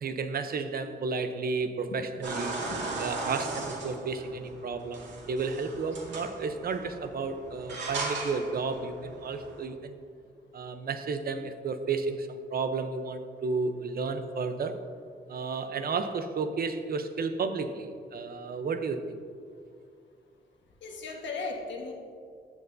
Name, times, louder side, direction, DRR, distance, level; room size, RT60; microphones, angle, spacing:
voice 1, 0.0-2.6 3.0-10.0 10.5-14.8 15.3-19.2, right 4 dB, 55° right, 8 dB, 0.7 m, -32 dB
sound 1, 2.2-9.7, right 3 dB, 75° right, 2.0 m, -38 dB
voice 2, 20.8-21.9, left 4 dB, 80° left, 1 dB, 1.4 m, -36 dB
14.5 x 8.0 x 2.7 m, 2.2 s
cardioid pair, 110°, 19 cm